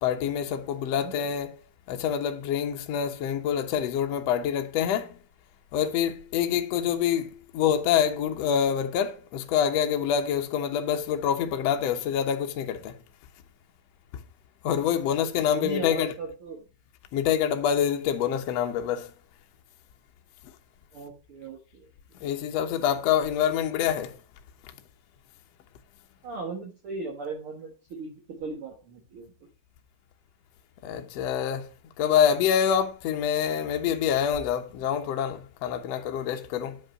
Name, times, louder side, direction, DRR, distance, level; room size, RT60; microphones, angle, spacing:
voice 1, 0.0-1.6 1.9-5.2 5.7-12.9 14.6-16.1 17.1-19.1 20.4-20.5 22.2-24.2 30.8-31.7 32.0-36.8, left 8 dB, 80° left, 1.4 m, -26 dB
voice 2, 15.4-16.6 20.9-21.9 26.2-29.3, right 4 dB, 85° right, 1.2 m, -38 dB
9.5 x 5.4 x 5.8 m
omnidirectional pair, 4.3 m